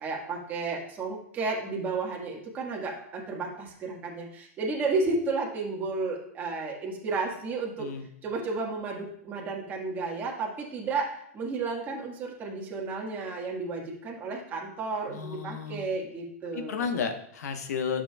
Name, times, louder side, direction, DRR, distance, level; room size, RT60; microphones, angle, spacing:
voice 1, 0.0-7.9 8.2-16.9, right 3 dB, 20° right, -1 dB, 1.6 m, -32 dB
voice 2, 15.1-15.9 16.5-18.0, left 6 dB, 90° left, 7 dB, 1.1 m, -32 dB
11.0 x 6.8 x 2.3 m, 0.71 s
supercardioid pair, 160°, 8 cm